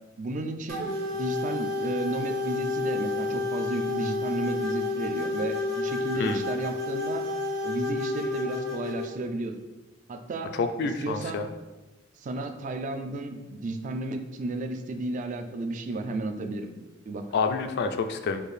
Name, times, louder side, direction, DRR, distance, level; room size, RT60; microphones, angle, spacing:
voice 1, 0.2-7.2 7.6-9.5 10.1-10.6 11.0-11.4 12.2-16.7 17.1-17.3, right 2 dB, 40° right, 7 dB, 0.3 m, -33 dB
sound 1, 0.7-9.1, left 3 dB, 55° right, 0.8 m, -30 dB
voice 2, 10.5-11.5 17.3-18.4, left 4 dB, 55° left, 7 dB, 0.3 m, -28 dB
4.5 x 2.5 x 3.2 m, 1.1 s
head